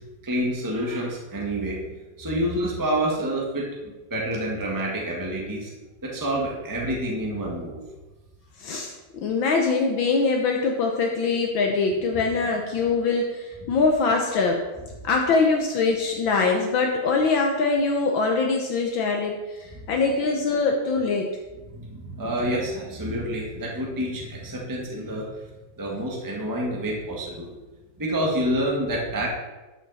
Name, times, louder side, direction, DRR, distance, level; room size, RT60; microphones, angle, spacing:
voice 1, 0.2-5.7 6.0-7.8 21.6-25.3 25.8-27.5 28.0-29.3, right 1 dB, 10° right, -2 dB, 1.4 m, -28 dB
voice 2, 8.6-14.6 15.0-21.3, left 4 dB, 75° left, 1 dB, 1.6 m, -23 dB
12.5 x 6.0 x 4.1 m, 1.1 s
omnidirectional pair, 2.2 m